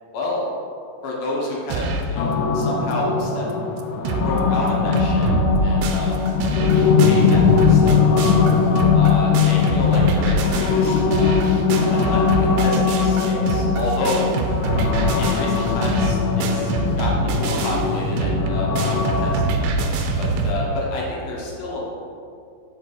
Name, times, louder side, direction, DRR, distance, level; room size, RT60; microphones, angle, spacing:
voice 1, 0.1-0.4 1.0-3.5 4.2-6.2 6.5-6.6 7.0-8.5 8.9-11.4 11.7-14.3 15.1-21.9, left 1 dB, 65° left, -3 dB, 2.0 m, -29 dB
sound 1, 1.7-2.2 2.6-2.7 2.9-3.0 3.5-3.6 3.8-4.4 4.7-20.5, right 2 dB, 80° right, 2.0 m, -24 dB
sound 2, 2.2-19.3, left 6 dB, 80° left, 2.1 m, -20 dB
5.2 x 4.5 x 5.7 m, 2.4 s
omnidirectional pair, 3.8 m